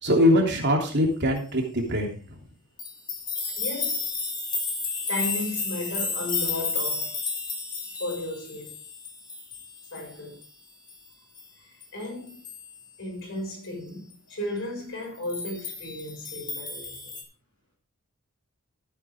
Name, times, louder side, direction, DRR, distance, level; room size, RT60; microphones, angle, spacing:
voice 1, 0.0-2.2, left 1 dB, 55° right, 3.1 m, -22 dB
sound 1, 2.8-10.1 10.4-10.5 10.9-11.0 11.4-11.5 11.8-11.9 12.3-12.8 15.2-17.2, left 4 dB, 20° left, 2.5 m, -32 dB
voice 2, 3.6-4.1 5.1-7.3 8.0-8.8 9.9-10.4 11.6-12.4 13.0-17.1, left 1 dB, 60° left, 6.2 m, -35 dB
14.0 x 8.9 x 3.6 m
head